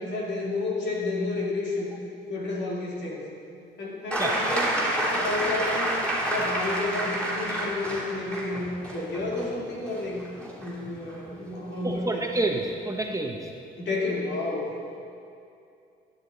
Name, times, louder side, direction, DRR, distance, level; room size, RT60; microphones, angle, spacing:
voice 1, 0.0-1.9 2.3-3.2 3.8-5.9 6.2-10.2 10.6-12.2 13.8-14.7, left 2 dB, 60° left, -4 dB, 3.0 m, -31 dB
sound 1, 4.1-11.6 12.8-12.9, right 1 dB, 5° left, 3.2 m, -29 dB
voice 2, 11.8-13.5, right 2 dB, 15° right, 1 dB, 1.1 m, -28 dB
12.5 x 10.5 x 4.1 m, 2.5 s
cardioid pair, 90°, 20 cm